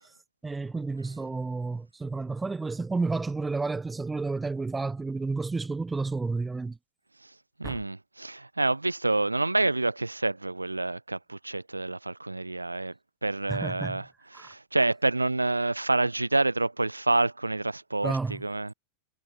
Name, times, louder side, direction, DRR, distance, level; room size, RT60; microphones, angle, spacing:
voice 1, 0.4-6.8 7.6-7.8 13.5-14.0 14.3-14.5 18.0-18.4, right 3 dB, 10° right, 0.4 m, -31 dB
voice 2, 7.6-12.9 13.2-14.1 14.3-18.7, right 2 dB, 85° right, 0.3 m, -28 dB
figure-of-eight pair, 90°, 0 cm